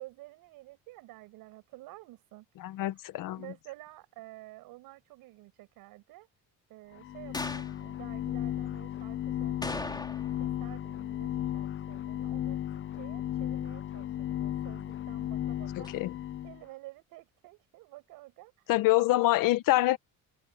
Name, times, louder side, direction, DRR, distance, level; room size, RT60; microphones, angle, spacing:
voice 1, 0.0-2.8 3.3-6.3 6.7-10.1 10.4-12.6 12.9-15.9 16.4-18.5 19.0-19.2, right 19 dB, 85° right, 5.5 m, -50 dB
voice 2, 2.6-3.4 15.7-16.2 18.7-20.0, left 16 dB, 75° left, 1.4 m, -26 dB
sound 1, 6.9-16.6, left 11 dB, 35° left, 0.6 m, -35 dB
sound 2, 7.3-7.8 9.6-10.5 10.7-10.8 15.8-16.0, left 2 dB, 10° left, 3.4 m, -37 dB
cardioid pair, 105°, 34 cm